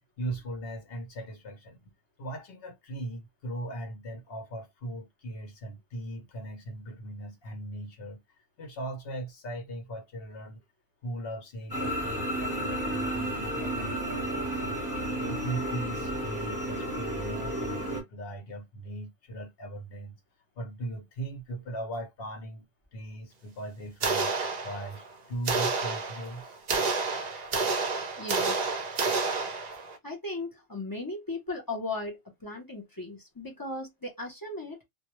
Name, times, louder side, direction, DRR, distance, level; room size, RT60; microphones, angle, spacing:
voice 1, 0.2-1.9 2.2-8.2 8.6-10.6 11.0-14.8 15.3-20.2 20.6-22.6 22.9-26.6, right 1 dB, 60° left, 0.9 m, -39 dB
sound 1, 11.7-18.0, right 1 dB, 15° right, 0.9 m, -32 dB
sound 2, 24.0-25.1 25.5-30.0, right 4 dB, 50° right, 0.5 m, -29 dB
voice 2, 28.2-28.8 30.0-34.8, left 2 dB, 25° left, 0.5 m, -37 dB
2.2 x 2.1 x 2.9 m
omnidirectional pair, 1.2 m